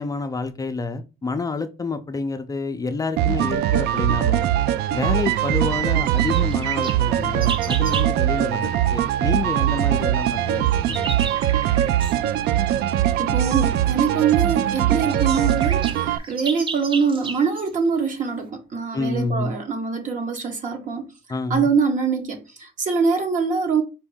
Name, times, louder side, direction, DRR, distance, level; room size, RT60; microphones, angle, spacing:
voice 1, 0.0-4.5 4.9-11.1 18.9-19.5 21.3-21.7, left 3 dB, 20° left, 0.4 m, -28 dB
sound 1, 3.2-16.2, right 12 dB, 75° right, 0.4 m, -21 dB
sound 2, 6.2-8.1 10.2-12.2 14.0-14.1 14.7-14.8 15.0-17.7, right 4 dB, 30° right, 0.7 m, -34 dB
voice 2, 13.2-21.1 21.5-23.8, right 5 dB, 50° right, 1.1 m, -23 dB
4.6 x 2.6 x 3.5 m
cardioid pair, 110°, 17 cm